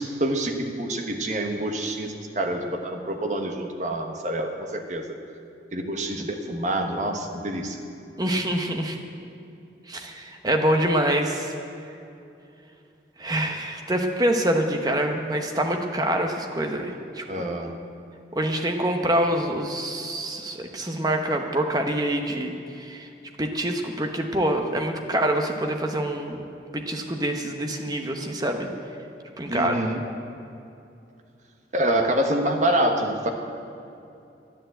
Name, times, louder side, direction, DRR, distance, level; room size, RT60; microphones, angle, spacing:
voice 1, 0.0-5.1 5.7-7.8 17.3-17.8 29.5-30.0 31.7-33.3, right 1 dB, 40° right, 4 dB, 1.2 m, -26 dB
voice 2, 8.2-9.0 9.9-11.5 13.2-17.2 18.3-22.5 22.8-23.1 23.4-26.4 26.7-28.7 29.4-29.8, right 1 dB, 20° right, 4 dB, 1.0 m, -25 dB
10.5 x 10.5 x 7.9 m, 2.7 s
head